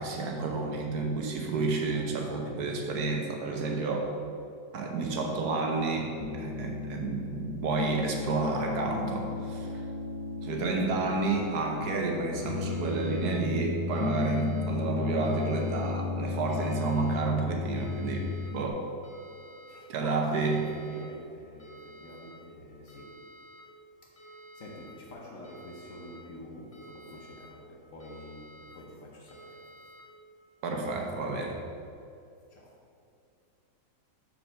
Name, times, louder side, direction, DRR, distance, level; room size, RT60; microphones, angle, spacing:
voice 1, 0.0-4.2 4.7-9.8 10.4-18.9 19.9-20.6 30.6-31.6, right 3 dB, 65° right, 1 dB, 1.3 m, -30 dB
Piano, 6.2-18.7, left 5 dB, 90° left, 1.4 m, -34 dB
sound 1, 12.6-13.4 13.9-14.6 15.2-15.9 16.5-17.2 17.8-18.5 19.0-19.8 20.3-21.1 21.6-22.3 22.9-23.6 24.2-24.9 25.4-26.2 26.7-27.5 28.0-28.7 29.3-30.0, right 1 dB, 20° left, 1.2 m, -51 dB
voice 2, 19.7-23.3 24.0-29.7 32.5-32.8, left 1 dB, 55° left, -2 dB, 1.1 m, -47 dB
5.8 x 4.8 x 5.4 m, 2.5 s
omnidirectional pair, 1.9 m